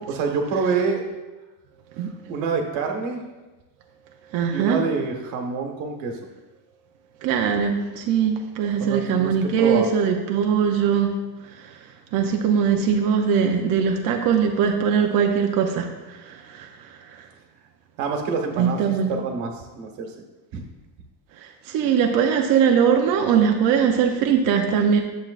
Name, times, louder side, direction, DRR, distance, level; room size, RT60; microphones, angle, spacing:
voice 1, 0.1-1.0 2.3-3.2 4.5-6.2 8.8-9.9 18.0-20.1, right 5 dB, 90° right, 3 dB, 1.4 m, -26 dB
voice 2, 4.3-4.8 7.2-11.1 11.6-11.7 12.1-16.7 18.6-19.1 21.7-25.0, right 7 dB, 50° right, 2 dB, 0.6 m, -21 dB
9.9 x 7.3 x 2.4 m, 1.1 s
cardioid pair, 180°, 44 cm